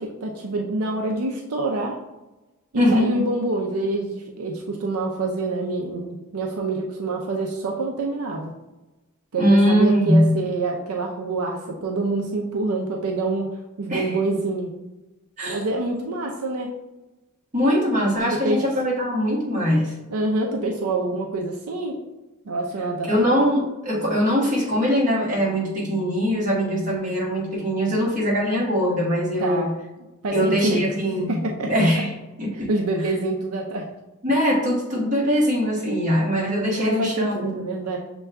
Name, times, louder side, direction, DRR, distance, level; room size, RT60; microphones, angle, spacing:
voice 1, 0.0-2.0 2.7-8.5 9.3-13.5 13.8-14.7 15.5-16.7 18.3-18.6 20.1-22.0 22.5-23.1 29.4-29.7 30.2-30.9 31.3-31.7 32.5-33.9 36.8-38.0, right 2 dB, 80° right, 0 dB, 0.5 m, -26 dB
voice 2, 2.7-3.1 9.4-10.3 13.9-14.1 15.4-15.6 17.5-19.9 23.1-29.7 30.3-32.1 32.4-32.7 34.2-37.5, equal, 35° right, -4 dB, 1.3 m, -21 dB
6.6 x 2.3 x 3.4 m, 1.1 s
head